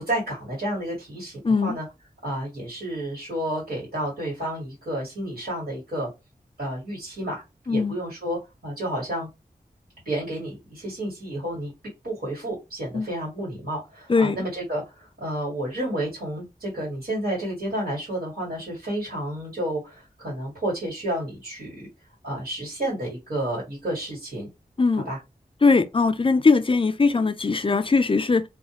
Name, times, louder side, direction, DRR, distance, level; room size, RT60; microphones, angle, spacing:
voice 1, 0.0-1.8 2.2-6.1 6.6-9.3 10.0-11.7 12.0-21.9 22.2-24.5 24.9-25.2, right 1 dB, 75° right, 1.5 m, -31 dB
voice 2, 1.4-1.8 7.7-8.0 12.9-13.1 14.1-14.4 24.8-25.1 25.6-28.4, left 4 dB, 35° left, 0.4 m, -20 dB
2.4 x 2.1 x 2.9 m
cardioid pair, 40°, 16 cm